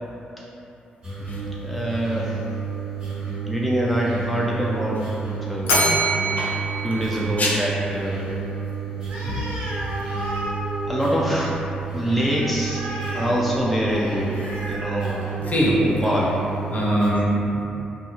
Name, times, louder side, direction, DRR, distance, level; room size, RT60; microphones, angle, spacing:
sound 1, 1.0-17.1, right 6 dB, 25° right, 1.2 m, -31 dB
voice 1, 1.6-2.3 3.5-5.0 5.5-5.9 6.8-8.3 10.9-11.6 11.9-12.8 13.1-14.3 14.7-15.2 15.7-16.3, equal, ahead, -5 dB, 0.4 m, -24 dB
Bell, 5.7-8.0, right 1 dB, 80° left, 0.5 m, -24 dB
Animal, 9.0-15.8, equal, 65° right, 0.7 m, -34 dB
voice 2, 15.4-15.7 16.7-17.6, equal, 45° left, -5 dB, 0.7 m, -22 dB
2.3 x 2.3 x 3.0 m, 2.9 s
hypercardioid pair, 40°, 4 cm